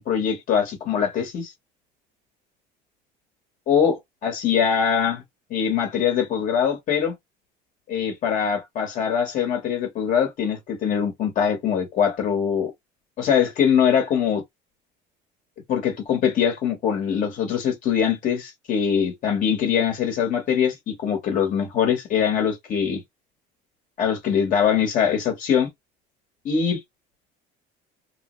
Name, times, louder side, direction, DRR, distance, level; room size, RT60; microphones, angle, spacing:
voice 1, 0.0-1.5 3.7-5.2 5.5-7.1 7.9-12.7 13.2-14.4 15.7-23.0 24.0-25.7 26.4-26.8, left 7 dB, 45° left, 1.2 m, -22 dB
3.2 x 2.1 x 3.0 m
cardioid pair, 140°, 19 cm